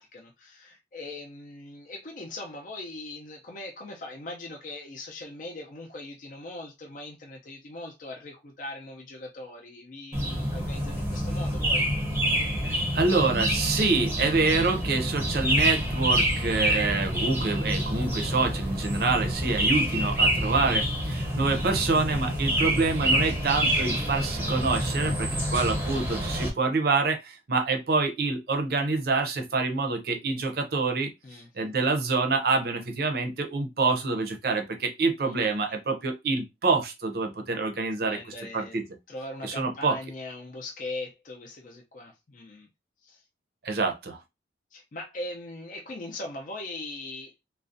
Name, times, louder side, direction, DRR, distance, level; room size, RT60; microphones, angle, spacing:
voice 1, 0.0-11.9 31.2-31.5 35.2-35.4 35.7-35.8 38.0-38.8 39.1-42.7 43.0-43.2 44.7-47.3, left 2 dB, 45° left, 0.4 m, -40 dB
sound 1, 10.1-26.5, equal, 10° right, 0.6 m, -27 dB
voice 2, 12.6-31.1 31.6-38.2 38.5-38.8 39.4-40.0 43.6-44.2, right 3 dB, 55° right, 0.5 m, -26 dB
2.4 x 2.1 x 2.5 m
head